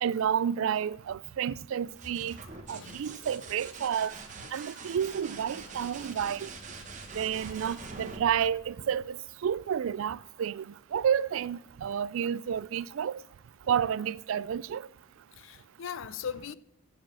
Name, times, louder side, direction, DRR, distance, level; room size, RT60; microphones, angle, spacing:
voice 1, 0.0-2.4 2.7-4.1 4.5-6.5 7.2-10.7 10.9-13.2 13.7-14.9, right 8 dB, 70° right, 0.3 m, -30 dB
sound 1, 1.8-9.4 11.2-11.7, right 4 dB, 35° right, 1.2 m, -45 dB
voice 2, 2.7-3.0 15.4-16.6, left 7 dB, 65° left, 0.4 m, -39 dB
7.4 x 6.9 x 7.2 m
head